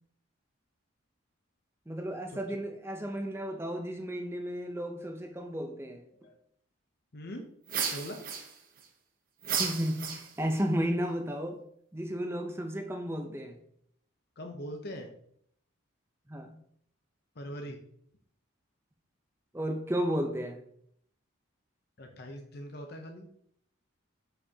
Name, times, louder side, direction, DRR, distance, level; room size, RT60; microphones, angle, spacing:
voice 1, 1.9-6.0 9.5-11.6 11.9-13.6 16.3-16.6 19.5-20.6, equal, 10° right, 0.6 m, -33 dB
voice 2, 7.1-7.5 7.9-8.2 14.4-15.1 17.3-17.8 22.0-23.3, equal, 50° left, 0.7 m, -42 dB
sound 1, 7.7-8.8 9.4-10.6, right 6 dB, 45° right, 0.8 m, -33 dB
6.7 x 5.5 x 2.8 m
head